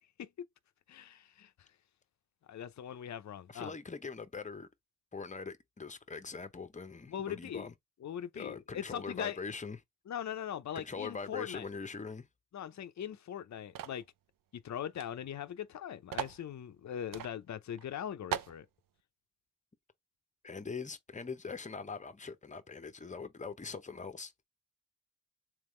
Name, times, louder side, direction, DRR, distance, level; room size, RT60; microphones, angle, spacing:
voice 1, 0.9-1.5 2.5-3.7 7.1-7.7 8.0-9.4 10.1-11.6 12.5-14.0 14.6-18.7, left 9 dB, 60° left, 0.5 m, -40 dB
voice 2, 3.5-4.7 5.1-7.7 8.3-9.8 10.7-12.3 20.4-24.3, left 4 dB, 25° left, 0.7 m, -42 dB
sound 1, 13.8-14.1 15.0-15.1 15.3-15.4 16.1-16.4 17.1-17.3 17.8-17.9 18.3-18.6, right 9 dB, 85° right, 0.5 m, -38 dB
3.6 x 3.0 x 3.1 m
cardioid pair, 65°, 32 cm